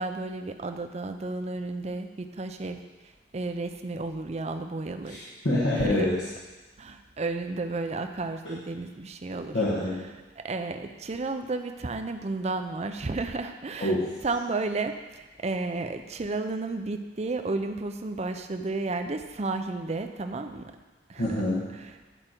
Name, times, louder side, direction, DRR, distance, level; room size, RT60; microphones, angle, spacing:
voice 1, 0.0-2.8 3.3-5.2 5.7-6.1 6.8-9.6 10.4-14.0 14.2-20.7 21.1-21.4 21.7-22.0, right 3 dB, 35° right, 7 dB, 0.5 m, -32 dB
voice 2, 5.0-6.2 9.5-10.0 13.8-14.1 21.2-21.7, left 1 dB, 85° left, -8 dB, 1.5 m, -26 dB
11.0 x 5.0 x 4.5 m, 1.2 s
head